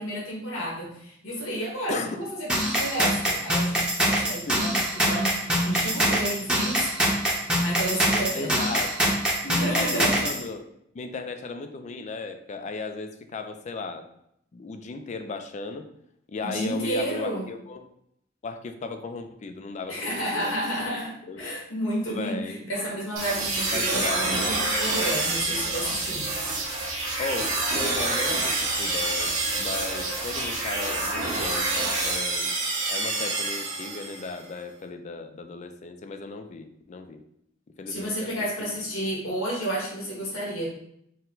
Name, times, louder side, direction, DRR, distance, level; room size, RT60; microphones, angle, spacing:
voice 1, 0.0-6.9 7.6-8.6 9.4-10.2 16.4-17.4 19.9-26.3 37.9-40.7, right 1 dB, 80° left, -4 dB, 1.5 m, -31 dB
sound 1, 2.5-10.4, equal, 5° right, 0.7 m, -24 dB
voice 2, 8.3-9.2 9.7-10.6 10.9-14.1 14.5-15.9 16.3-17.9 18.4-20.1 20.3-20.6 21.2-21.4 22.1-22.9 23.7-24.2 27.2-29.3 29.6-31.7 32.0-32.5 32.9-37.2 37.8-38.5, left 4 dB, 35° left, 7 dB, 0.3 m, -36 dB
sound 2, 23.2-34.3, right 2 dB, 75° right, 1.3 m, -27 dB
4.3 x 2.1 x 3.8 m, 0.74 s
head